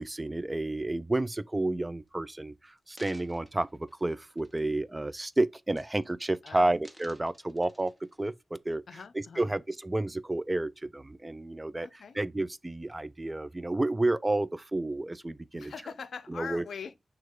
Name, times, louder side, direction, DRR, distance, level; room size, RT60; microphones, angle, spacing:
voice 1, 0.0-7.9 8.2-8.8 9.4-11.9 12.2-15.7 16.3-16.6, right 2 dB, 20° right, 0.3 m, -31 dB
sound 1, 2.1-2.2 2.7-4.8 5.2-5.4 5.7-6.3 6.6-8.3 8.9-9.0, equal, ahead, 0.8 m, -56 dB
voice 2, 8.9-9.5 11.8-12.2 15.5-17.0, left 6 dB, 90° left, 0.4 m, -42 dB
6.3 x 2.3 x 3.6 m
wide cardioid pair, 80°, 0 cm